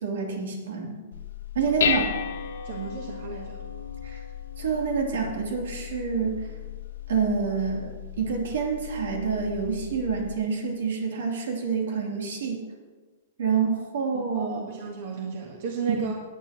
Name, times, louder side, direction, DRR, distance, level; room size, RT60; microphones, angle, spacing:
voice 1, 0.0-1.0 1.5-2.1 4.0-4.2 4.6-6.4 7.1-7.9 8.2-12.6 13.4-14.7 16.0-16.1, right 5 dB, 80° right, 0 dB, 3.0 m, -27 dB
Dishes pots and pans, 1.1-10.4, left 9 dB, 85° left, 0.9 m, -34 dB
voice 2, 2.6-3.6 14.1-16.1, right 5 dB, 40° right, 1 dB, 1.3 m, -34 dB
18.5 x 9.4 x 3.0 m, 1.4 s
supercardioid pair, 180°, 0 cm